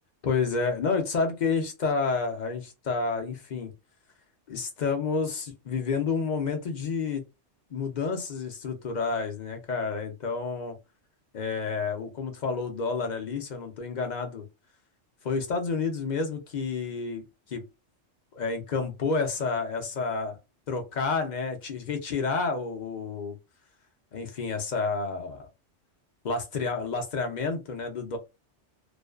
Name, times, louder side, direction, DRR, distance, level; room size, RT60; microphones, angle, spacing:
voice 1, 0.2-3.7 4.5-7.2 7.7-10.8 11.3-14.4 15.2-17.6 18.3-20.4 20.7-23.4 24.1-25.5 26.2-28.2, left 4 dB, 50° left, 0.6 m, -30 dB
2.4 x 2.2 x 2.3 m
omnidirectional pair, 1.2 m